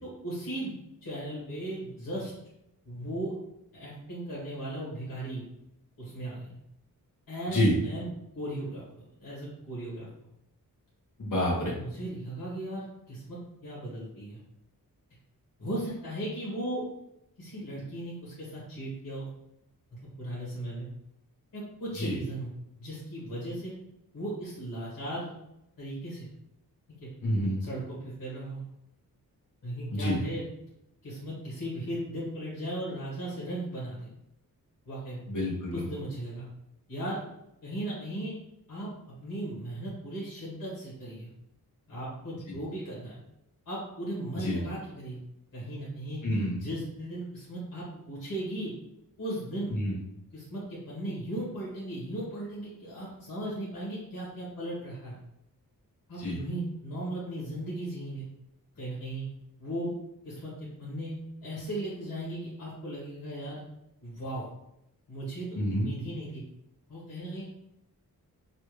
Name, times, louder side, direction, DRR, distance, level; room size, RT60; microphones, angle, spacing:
voice 1, 0.0-0.7 1.0-2.3 2.8-3.3 3.7-5.5 6.0-6.6 7.3-8.1 8.3-8.9 9.2-10.1 11.5-13.4 13.6-14.4 15.6-16.8 17.4-19.3 20.0-20.9 21.5-22.5 22.8-23.7 24.1-25.3 25.8-26.3 26.9-27.1 27.6-28.7 29.6-30.4 31.0-34.1 34.8-35.2 35.7-36.5 36.9-37.2 37.6-38.3 38.7-38.9 39.2-41.3 41.9-43.2 43.6-45.2 45.5-46.2 46.6-48.7 49.2-49.8 50.3-55.2 56.1-58.2 58.7-59.2 59.6-59.9 60.2-63.6 64.0-64.5 65.1-66.4 66.9-67.4, right 1 dB, 90° left, -7 dB, 1.4 m, -37 dB
voice 2, 11.2-11.7 21.9-22.1 27.2-27.6 29.9-30.2 35.3-35.8 44.3-44.6 46.2-46.6 49.7-49.9 56.2-56.4 65.6-65.9, left 1 dB, 60° left, -4 dB, 1.3 m, -28 dB
3.3 x 2.5 x 3.1 m, 0.83 s
wide cardioid pair, 110°, 35 cm